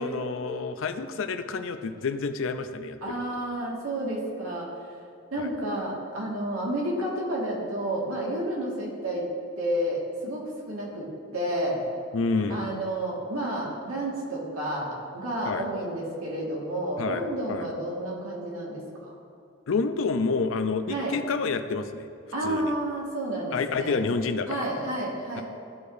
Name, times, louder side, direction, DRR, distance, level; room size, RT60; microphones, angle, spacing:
voice 1, 0.0-3.1 5.4-5.5 12.1-12.7 15.4-15.7 17.0-17.7 19.7-22.1 22.4-22.7 23.5-24.7, left 4 dB, 70° left, 9 dB, 0.5 m, -29 dB
voice 2, 3.0-4.7 5.3-9.3 9.6-11.8 12.5-19.1 20.9-21.1 22.3-24.0 24.5-25.4, right 1 dB, 90° right, -4 dB, 1.8 m, -31 dB
14.0 x 4.9 x 2.6 m, 2.6 s
head